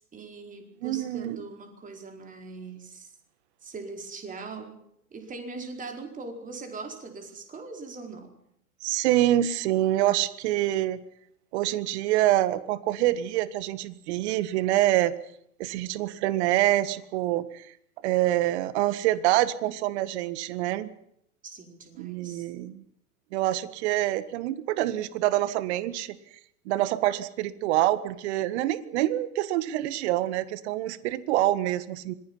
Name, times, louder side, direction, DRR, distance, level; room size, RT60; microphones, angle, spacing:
voice 1, 0.0-3.1 3.6-4.8 5.1-8.4 21.4-22.5, right 4 dB, 15° right, 4 dB, 4.7 m, -41 dB
voice 2, 0.8-1.4 8.8-11.0 11.5-15.1 15.6-17.6 18.0-20.9 22.0-22.8 23.3-26.2 26.6-32.1, right 14 dB, 45° right, 15 dB, 1.7 m, -26 dB
26.0 x 21.0 x 5.6 m, 0.73 s
hypercardioid pair, 110°, 45 cm